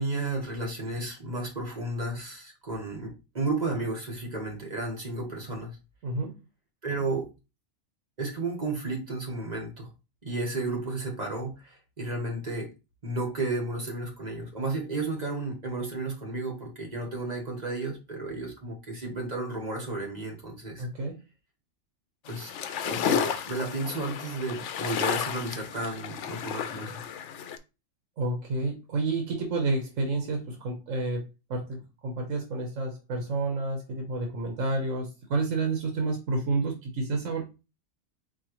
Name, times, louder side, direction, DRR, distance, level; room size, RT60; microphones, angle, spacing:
voice 1, 0.0-5.8 6.8-7.3 8.2-9.9 10.2-12.7 13.0-20.9 22.3-22.5 22.8-27.0, right 2 dB, 30° right, 1.4 m, -33 dB
voice 2, 6.0-6.4 20.8-21.2 28.2-31.2 31.5-37.4, right 3 dB, 70° right, 1.4 m, -30 dB
sound 1, 22.3-27.6, left 8 dB, 70° left, 0.8 m, -32 dB
4.6 x 3.8 x 3.0 m
omnidirectional pair, 1.4 m